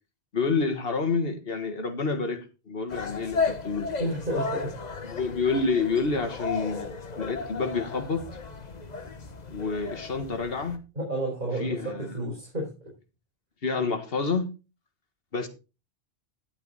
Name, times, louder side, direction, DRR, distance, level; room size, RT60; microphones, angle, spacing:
voice 1, 0.3-3.9 5.0-6.9 7.2-8.2 9.5-10.8 11.6-12.1 13.6-14.5 15.3-15.5, left 4 dB, 60° left, 1.8 m, -28 dB
sound 1, 2.9-10.8, left 4 dB, 40° left, 1.2 m, -34 dB
voice 2, 4.0-4.8 10.9-12.7, right 1 dB, 45° right, 4.8 m, -31 dB
10.5 x 8.1 x 4.0 m
omnidirectional pair, 1.1 m